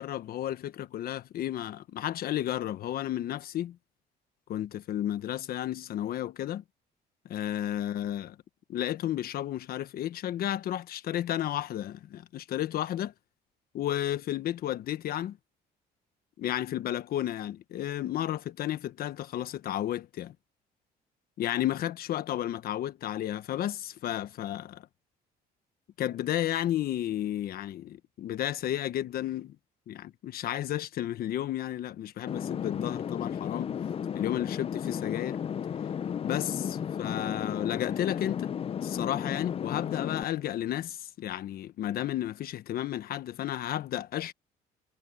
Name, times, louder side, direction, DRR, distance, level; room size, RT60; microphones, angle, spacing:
voice 1, 0.0-3.8 4.5-6.6 7.2-8.3 8.7-13.1 13.7-15.4 16.4-20.3 21.4-24.9 26.0-29.6 29.9-33.8 34.1-35.4 36.2-38.5 38.8-44.3, left 12 dB, 65° left, 1.3 m, -32 dB
sound 1, 32.3-40.2, left 8 dB, 35° left, 0.5 m, -34 dB
cardioid pair, 110°, 17 cm